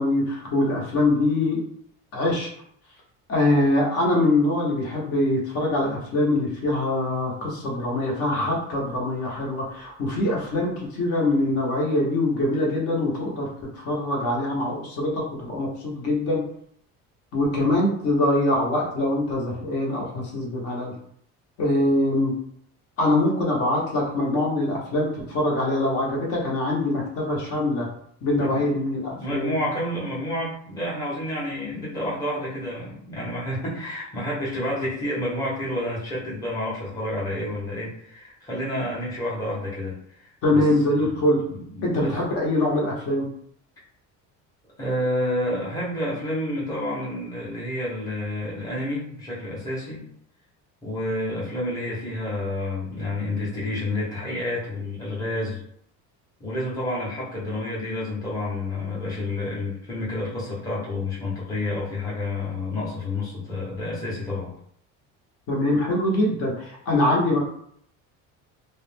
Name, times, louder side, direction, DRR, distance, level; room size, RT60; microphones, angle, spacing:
voice 1, 0.0-1.6 2.1-2.5 3.3-16.4 17.3-20.9 21.6-22.3 23.0-27.9 28.2-29.6 40.4-41.4 41.8-43.3 65.5-67.4, left 1 dB, 50° left, -2 dB, 0.8 m, -23 dB
voice 2, 28.3-28.8 29.1-40.6 41.0-42.2 44.8-50.0 50.8-55.6 56.4-64.5, left 1 dB, 10° left, -7 dB, 0.7 m, -29 dB
2.4 x 2.1 x 3.2 m, 0.65 s
cardioid pair, 170°, 31 cm